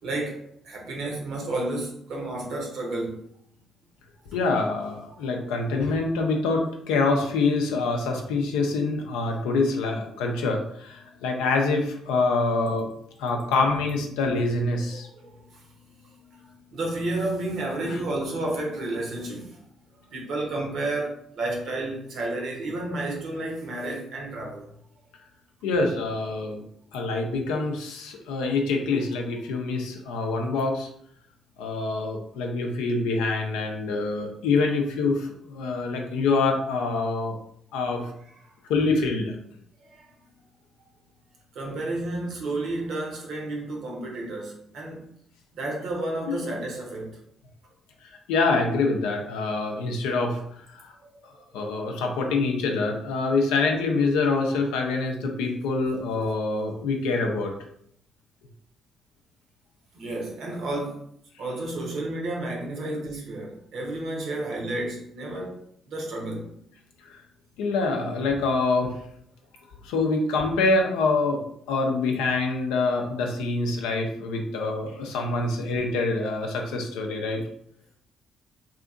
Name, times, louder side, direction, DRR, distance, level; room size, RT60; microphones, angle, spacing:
voice 1, 0.0-3.2 14.9-15.6 16.0-19.6 20.1-24.8 38.4-38.5 39.8-40.1 41.5-45.0 45.5-47.2 51.0-51.4 59.9-61.0 61.4-66.5, right 2 dB, 65° right, 0 dB, 0.8 m, -32 dB
voice 2, 4.3-12.9 13.2-15.1 17.8-18.0 25.6-26.6 26.9-30.9 31.6-37.4 37.7-38.1 38.7-39.4 46.3-46.5 48.0-50.9 51.2-57.5 67.0-67.2 67.6-69.0 69.8-71.4 71.7-77.4, left 3 dB, 80° left, 2 dB, 0.4 m, -25 dB
2.8 x 2.5 x 2.4 m, 0.70 s
hypercardioid pair, 45°, 0 cm